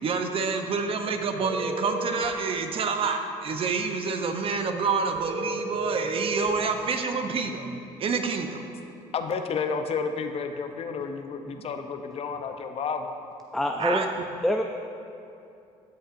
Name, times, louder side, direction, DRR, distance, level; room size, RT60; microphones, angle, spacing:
voice 1, 0.0-8.6 11.5-11.6 13.8-14.1, right 4 dB, 45° right, 6 dB, 0.7 m, -28 dB
sound 1, 1.4-2.3 5.1-6.5, right 2 dB, 20° right, 0.9 m, -32 dB
voice 2, 9.1-13.1, left 5 dB, 50° left, 6 dB, 0.6 m, -31 dB
voice 3, 13.5-14.1 14.4-14.6, left 1 dB, ahead, 4 dB, 0.3 m, -25 dB
12.5 x 5.4 x 2.5 m, 2.6 s
cardioid pair, 90°, 13 cm